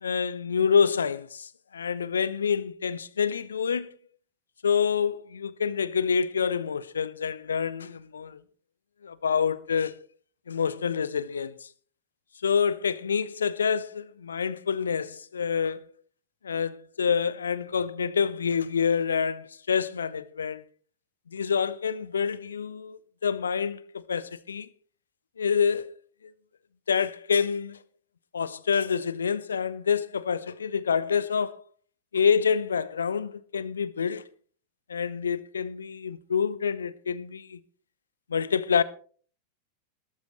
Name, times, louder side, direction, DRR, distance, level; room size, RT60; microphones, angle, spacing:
voice 1, 0.0-3.9 4.6-8.4 9.0-10.1 10.5-11.7 12.4-15.8 16.4-20.6 21.3-24.7 25.4-26.0 26.2-26.3 26.9-27.8 28.3-31.6 32.1-34.3 34.9-37.6 38.3-38.8, left 6 dB, 70° left, 0.8 m, -27 dB
19.5 x 13.5 x 3.1 m
figure-of-eight pair, 90°, 0 cm